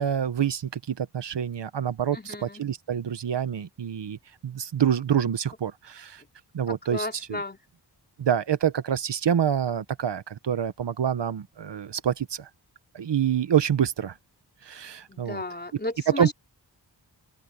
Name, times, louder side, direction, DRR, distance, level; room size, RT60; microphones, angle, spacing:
voice 1, 0.0-6.2 6.5-7.4 8.2-12.5 12.9-14.1 14.6-15.4 16.1-16.3, right 8 dB, 80° right, 1.0 m, -27 dB
voice 2, 2.1-2.6 6.7-7.6 15.1-16.3, left 2 dB, 25° left, 4.0 m, -34 dB
open air
wide cardioid pair, 105°, 41 cm